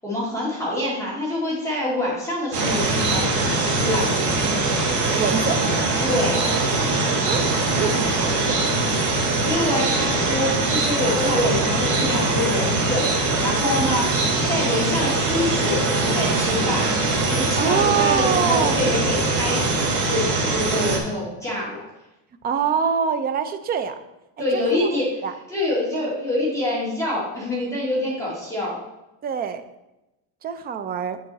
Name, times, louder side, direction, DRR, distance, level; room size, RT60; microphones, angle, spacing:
voice 1, 0.0-4.1 6.0-6.4 9.5-14.2 14.5-16.9 17.3-21.8 24.4-28.8, left 1 dB, 5° left, -7 dB, 2.0 m, -26 dB
sound 1, 2.5-21.0, right 2 dB, 40° right, 1.8 m, -22 dB
voice 2, 5.2-5.6 7.3-7.5 7.8-8.6 17.5-18.8 22.4-24.0 24.4-25.3 25.9-26.1 29.2-29.6 30.4-31.2, right 7 dB, 25° right, 9 dB, 0.3 m, -25 dB
7.3 x 7.2 x 4.0 m, 0.96 s
cardioid pair, 170°, 44 cm